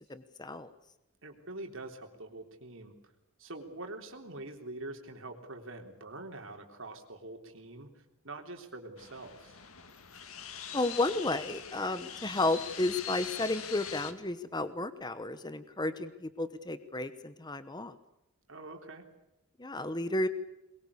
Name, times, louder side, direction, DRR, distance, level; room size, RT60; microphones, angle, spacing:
voice 1, 0.1-0.7 10.7-17.9 19.6-20.3, left 2 dB, 20° left, 12 dB, 1.0 m, -32 dB
voice 2, 1.2-2.9 3.4-9.6 18.5-19.0, right 2 dB, 60° right, 4 dB, 3.6 m, -45 dB
sound 1, 9.0-14.1, left 9 dB, 70° left, 2.0 m, -43 dB
22.5 x 22.0 x 8.5 m, 0.87 s
head